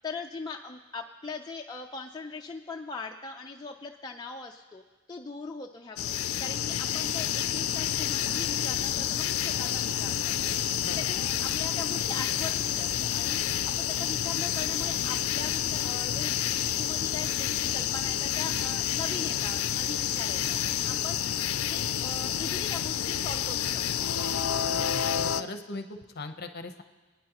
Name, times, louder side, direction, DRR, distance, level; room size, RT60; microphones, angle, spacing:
voice 1, 0.0-4.8 5.1-24.1, left 4 dB, 20° left, 1 dB, 0.4 m, -41 dB
sound 1, 6.0-25.4, left 10 dB, 80° left, 0.4 m, -29 dB
voice 2, 10.8-11.1 24.5-24.6 24.9-26.8, left 2 dB, 45° left, 7 dB, 0.8 m, -40 dB
26.0 x 9.4 x 2.9 m, 1.3 s
head